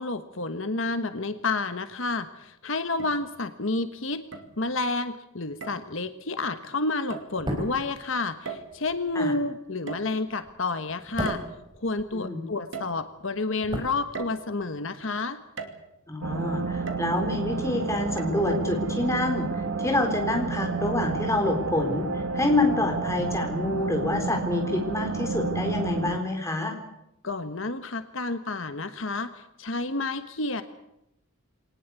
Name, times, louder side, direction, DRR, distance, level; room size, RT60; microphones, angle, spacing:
voice 1, 0.0-4.2 4.6-11.4 11.8-15.4 27.2-30.6, left 3 dB, 70° left, 10 dB, 1.3 m, -30 dB
sound 1, 1.9-2.0 3.0-3.6 4.3-4.9 5.6-5.9 7.1-7.4 8.5-9.0 9.9-10.6 11.3-12.1 12.7-13.4 14.1-14.9 15.6-16.1 16.9-17.5 18.2-18.3, right 4 dB, 60° right, 2.6 m, -39 dB
sound 2, 7.3-12.6 12.8-14.7 14.9-15.1, equal, 20° right, 4.6 m, -37 dB
voice 2, 12.1-12.4 16.1-19.5 19.8-26.8, left 2 dB, 15° left, 3 dB, 3.9 m, -27 dB
sound 3, 16.2-26.2, right 4 dB, 75° right, 1.4 m, -30 dB
23.0 x 19.5 x 8.2 m, 0.85 s
head